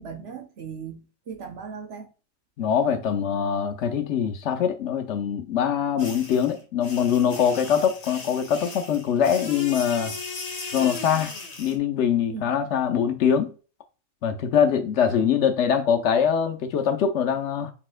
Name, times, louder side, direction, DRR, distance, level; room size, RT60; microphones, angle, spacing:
voice 1, 0.0-2.1 12.3-12.6, right 6 dB, 60° right, 0.9 m, -38 dB
voice 2, 2.6-10.2 10.7-11.3 11.6-13.5 14.2-17.7, left 8 dB, 65° left, 0.8 m, -23 dB
sound 1, 6.0-11.8, left 4 dB, 35° left, 0.8 m, -37 dB
4.0 x 3.7 x 2.4 m
omnidirectional pair, 1.4 m